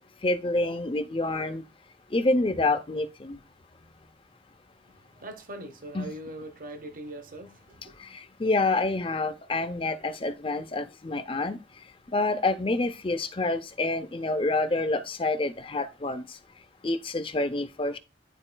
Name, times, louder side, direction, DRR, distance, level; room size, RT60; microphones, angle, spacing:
voice 1, 0.2-1.6 2.1-3.4 5.9-6.1 8.0-11.6 12.1-16.4 16.8-18.0, left 2 dB, 30° left, 0.5 m, -27 dB
voice 2, 4.9-8.0, right 1 dB, 45° right, 1.0 m, -41 dB
11.0 x 4.2 x 2.2 m
head